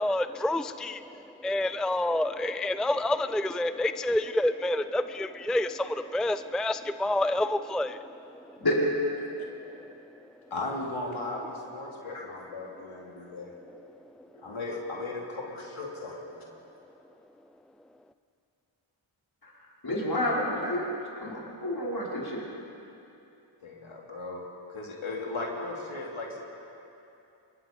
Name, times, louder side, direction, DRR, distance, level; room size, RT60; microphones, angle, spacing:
voice 1, 0.0-8.6 9.6-9.9, left 1 dB, ahead, 12 dB, 0.5 m, -28 dB
voice 2, 10.5-13.5 14.3-16.5 23.6-24.4 24.7-26.4, left 2 dB, 80° left, -2 dB, 3.2 m, -36 dB
voice 3, 19.8-22.4, left 1 dB, 50° left, -5 dB, 5.5 m, -29 dB
25.5 x 22.5 x 5.4 m, 2.8 s
wide cardioid pair, 60°, 48 cm